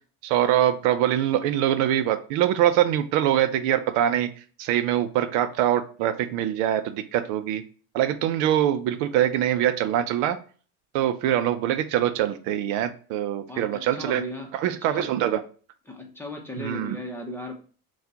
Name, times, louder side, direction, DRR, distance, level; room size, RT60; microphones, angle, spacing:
voice 1, 0.2-4.3 4.6-7.6 7.9-10.4 10.9-14.2 14.5-15.4 16.6-17.0, right 11 dB, 80° right, 11 dB, 0.6 m, -23 dB
voice 2, 13.5-14.5 14.9-15.1 15.9-17.5, left 1 dB, 5° left, 0 dB, 0.8 m, -36 dB
5.7 x 2.4 x 2.8 m, 0.41 s
cardioid pair, 135°, 42 cm